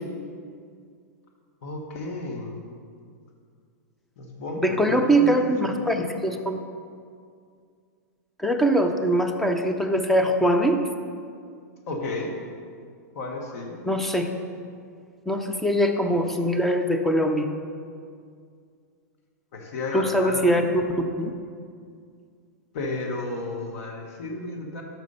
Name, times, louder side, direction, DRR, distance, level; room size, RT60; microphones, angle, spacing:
voice 1, 1.6-2.6 4.2-5.4 5.6-5.8 11.9-12.3 13.1-13.8 19.5-20.6 22.7-24.8, left 2 dB, 60° left, 1 dB, 1.2 m, -33 dB
voice 2, 4.6-6.6 8.4-10.8 13.8-14.3 15.3-17.4 19.9-21.3, right 1 dB, 5° left, 5 dB, 0.5 m, -22 dB
6.2 x 6.0 x 5.5 m, 2.2 s
hypercardioid pair, 135°, 9 cm